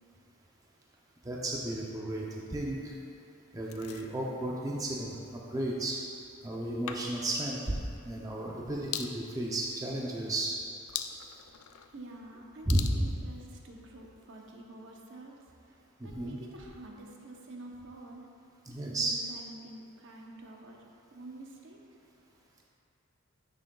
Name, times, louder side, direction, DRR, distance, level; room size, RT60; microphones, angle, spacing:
voice 1, 1.2-2.2 2.5-2.9 3.5-6.0 6.4-7.7 8.0-10.5 11.1-11.3 12.7-13.2 16.0-16.4 18.7-19.1, right 1 dB, 15° right, -3 dB, 0.5 m, -33 dB
sound 1, 3.6-14.2, left 9 dB, 70° left, 0.4 m, -45 dB
voice 2, 11.9-15.4 16.0-18.2 18.8-20.8 21.1-21.8, right 2 dB, 60° right, 0 dB, 0.8 m, -48 dB
10.0 x 6.3 x 2.3 m, 2.6 s
head